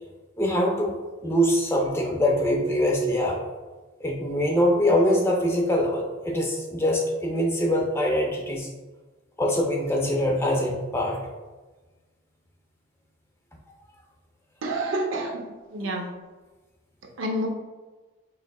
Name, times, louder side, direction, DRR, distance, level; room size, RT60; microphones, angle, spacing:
voice 1, 0.4-0.9 1.2-3.4 4.0-8.7 9.4-11.2 15.8-15.9, equal, 10° left, 0 dB, 0.4 m, -23 dB
voice 2, 14.6-15.4 15.7-16.1 17.2-17.5, right 1 dB, 70° right, 2 dB, 0.6 m, -28 dB
4.5 x 3.2 x 2.3 m, 1.2 s
head